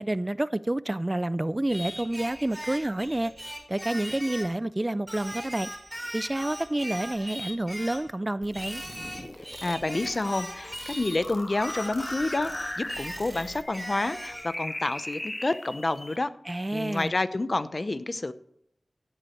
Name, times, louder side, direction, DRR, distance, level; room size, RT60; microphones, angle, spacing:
voice 1, 0.0-3.3 3.7-5.7 6.1-8.8 16.5-17.1, right 1 dB, 30° right, 0.4 m, -29 dB
Singing, 1.7-4.6 5.1-8.1 8.5-11.2 11.6-14.5, equal, 5° right, 4.2 m, -39 dB
sound 1, 8.4-13.6, right 3 dB, 65° right, 1.2 m, -49 dB
sound 2, 8.8-16.2, left 1 dB, 25° left, 0.5 m, -39 dB
voice 2, 9.3-16.3 16.7-18.3, left 2 dB, 50° left, 0.8 m, -29 dB
15.5 x 8.0 x 4.5 m
cardioid pair, 45°, 0 cm